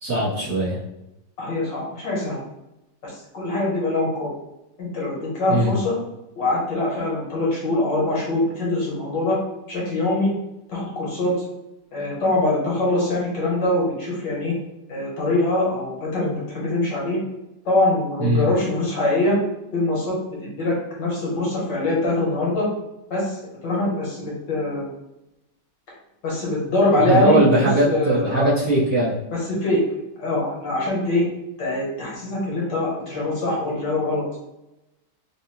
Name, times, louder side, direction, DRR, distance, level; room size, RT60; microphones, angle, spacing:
voice 1, 0.0-0.8 5.5-5.7 18.2-18.4 27.0-29.1, right 1 dB, 40° right, -12 dB, 1.4 m, -20 dB
voice 2, 1.4-2.4 3.0-4.3 4.8-5.9 6.4-9.4 9.7-10.3 10.7-11.3 11.9-14.5 14.9-17.2 17.6-19.4 19.7-22.7 23.1-24.9 26.2-28.5 29.3-29.8 30.2-31.2 31.6-34.2, left 2 dB, 65° left, -5 dB, 1.6 m, -23 dB
3.9 x 2.6 x 3.0 m, 0.91 s
omnidirectional pair, 2.2 m